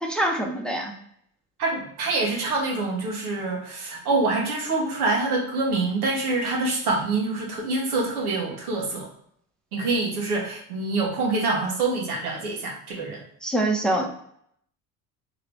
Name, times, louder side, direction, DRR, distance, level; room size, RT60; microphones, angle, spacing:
voice 1, 0.0-0.9 13.4-14.1, right 1 dB, ahead, 0 dB, 0.7 m, -24 dB
voice 2, 1.6-9.1 9.7-13.2, right 3 dB, 80° right, -1 dB, 1.1 m, -26 dB
3.8 x 2.6 x 3.3 m, 0.67 s
figure-of-eight pair, 55°, 44 cm